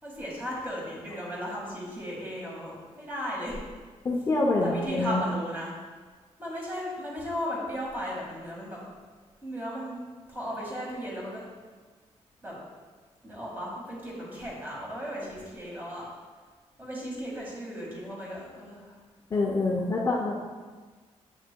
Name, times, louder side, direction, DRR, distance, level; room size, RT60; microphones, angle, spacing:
voice 1, 0.0-3.6 4.6-5.7 6.4-8.8 9.4-10.0 10.3-11.4 12.4-12.6 13.2-16.1 16.8-19.0, equal, 15° right, -4 dB, 1.8 m, -36 dB
voice 2, 4.0-5.2 19.3-20.4, left 2 dB, 25° left, -2 dB, 0.5 m, -26 dB
8.0 x 6.4 x 2.2 m, 1.4 s
wide cardioid pair, 175°, 12 cm